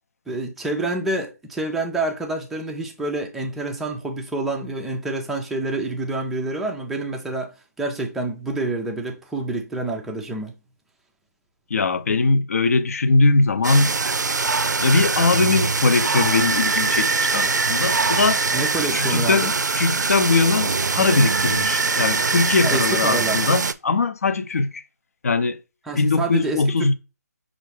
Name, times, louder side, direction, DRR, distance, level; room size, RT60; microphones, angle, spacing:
voice 1, 0.3-7.5 7.8-10.6 18.5-19.5 22.6-23.4 25.9-26.9, right 2 dB, ahead, 0.3 m, -27 dB
voice 2, 11.7-13.9 14.8-18.4 18.9-19.5 19.8-24.8 25.2-25.6 26.0-26.9, left 3 dB, 55° left, 0.5 m, -20 dB
sound 1, 13.6-23.7, right 4 dB, 85° right, 0.4 m, -22 dB
5.9 x 2.5 x 3.2 m
figure-of-eight pair, 155°, 9 cm